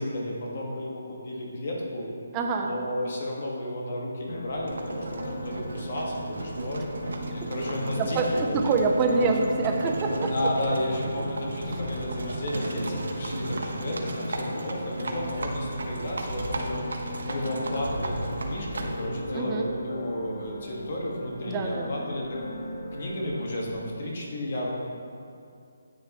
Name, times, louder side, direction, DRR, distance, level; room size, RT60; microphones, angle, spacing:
voice 1, 0.0-2.1 2.6-6.8 7.3-8.7 10.2-16.8 17.2-18.2 18.4-22.4 22.9-24.7, left 1 dB, 45° left, -2 dB, 1.6 m, -33 dB
voice 2, 2.3-2.7 7.3-7.5 8.0-10.5 19.3-19.7 21.4-22.0, right 3 dB, 15° right, 2 dB, 0.6 m, -26 dB
sound 1, 4.3-23.9, left 1 dB, 75° left, 1.1 m, -38 dB
Livestock farm animals working animals, 4.7-19.1, right 2 dB, 75° right, 1.1 m, -35 dB
10.0 x 8.1 x 3.1 m, 2.5 s
hypercardioid pair, 170°, 0 cm